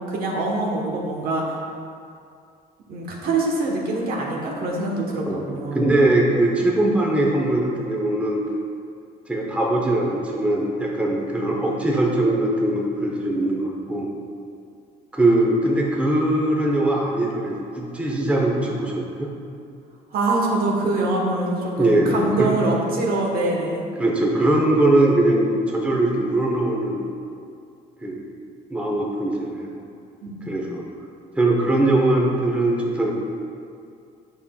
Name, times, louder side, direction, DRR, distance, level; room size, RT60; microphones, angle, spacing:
voice 1, 0.0-1.6 2.9-5.8 20.1-23.9 30.2-30.6, right 2 dB, 60° right, -2 dB, 1.1 m, -24 dB
voice 2, 5.3-8.4 9.3-14.1 15.1-19.3 21.8-22.1 22.4-22.5 24.0-27.1 28.0-28.3 28.7-29.7 30.5-30.8 31.3-33.1, right 1 dB, 5° right, -2 dB, 0.8 m, -21 dB
8.3 x 5.5 x 2.3 m, 2.4 s
cardioid pair, 110°, 17 cm